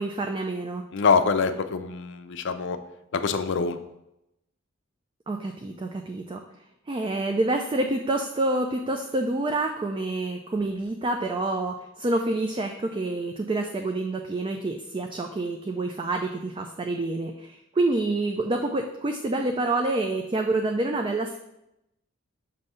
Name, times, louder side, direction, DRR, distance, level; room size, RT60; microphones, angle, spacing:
voice 1, 0.0-0.8 5.3-6.4 6.9-21.4, right 2 dB, 25° right, 3 dB, 0.3 m, -27 dB
voice 2, 0.9-2.8 3.1-3.8, left 5 dB, 60° left, 9 dB, 0.5 m, -24 dB
6.5 x 2.7 x 5.5 m, 0.86 s
head